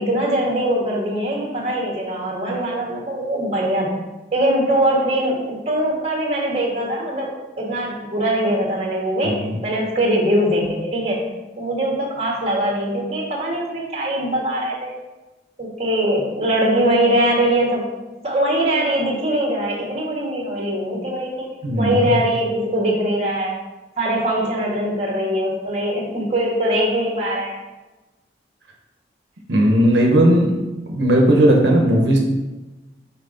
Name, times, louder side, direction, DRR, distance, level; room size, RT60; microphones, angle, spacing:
voice 1, 0.0-4.0 4.3-11.3 11.6-15.0 15.6-17.9 18.2-21.4 21.8-23.6 24.0-27.6, right 1 dB, 35° right, -2 dB, 1.4 m, -22 dB
voice 2, 9.2-9.6 21.6-22.2 29.5-30.5 30.9-32.2, right 1 dB, 85° right, 0 dB, 0.9 m, -16 dB
5.7 x 4.3 x 3.9 m, 1.1 s
head